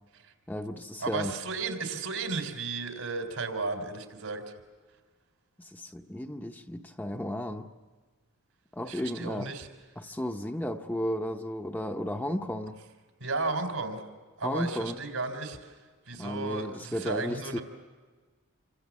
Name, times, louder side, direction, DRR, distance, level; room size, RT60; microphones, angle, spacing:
voice 1, 0.5-1.3 5.6-7.7 8.7-9.5 10.0-12.8 14.4-15.0 16.1-17.6, equal, 10° left, 5 dB, 0.7 m, -34 dB
voice 2, 1.0-4.4 8.9-9.7 13.2-14.0 14.4-15.7 16.1-17.6, right 3 dB, 85° right, 5 dB, 3.8 m, -34 dB
27.5 x 25.0 x 7.3 m, 1.4 s
head